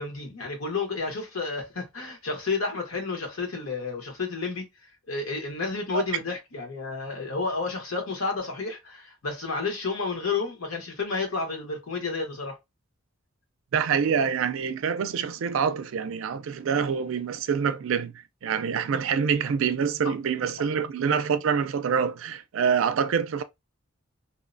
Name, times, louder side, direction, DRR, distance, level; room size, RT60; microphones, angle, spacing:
voice 1, 0.0-4.6 5.1-12.6, left 4 dB, 85° left, 1.1 m, -31 dB
voice 2, 13.7-18.1 18.4-23.4, right 6 dB, 70° right, 0.4 m, -26 dB
2.8 x 2.0 x 2.5 m
head